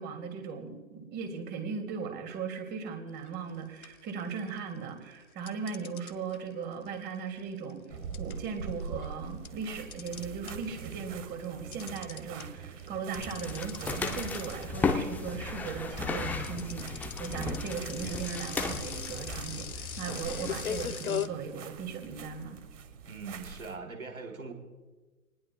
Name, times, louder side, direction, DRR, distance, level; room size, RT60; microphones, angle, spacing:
voice 1, 0.0-7.8 8.2-22.6, right 6 dB, 25° right, 5 dB, 2.5 m, -38 dB
sound 1, 3.2-3.5 3.8-4.8 5.5-10.8 11.1-21.3, left 8 dB, 80° left, 1.0 m, -40 dB
sound 2, 7.9-23.8, right 6 dB, 60° right, 1.5 m, -45 dB
sound 3, 13.1-20.9, left 4 dB, 5° left, 0.5 m, -35 dB
voice 2, 23.1-24.5, right 4 dB, 80° right, 2 dB, 3.6 m, -41 dB
26.5 x 20.0 x 2.3 m, 1.3 s
figure-of-eight pair, 115°, 42 cm